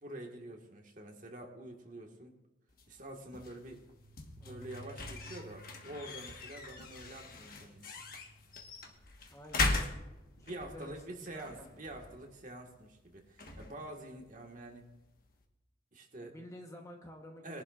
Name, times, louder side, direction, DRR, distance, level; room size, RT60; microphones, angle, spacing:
voice 1, 0.0-2.4 2.9-3.8 4.4-8.0 10.4-14.9 15.9-16.3 17.4-17.6, right 1 dB, 40° right, 1 dB, 1.7 m, -47 dB
sound 1, 2.7-15.4, left 2 dB, 50° left, 1.4 m, -41 dB
sound 2, 3.7-12.1, equal, 75° right, 5.0 m, -57 dB
voice 2, 9.3-10.0 10.4-11.7 16.2-17.6, left 1 dB, 15° left, 2 dB, 1.1 m, -51 dB
21.5 x 11.0 x 2.5 m, 0.99 s
head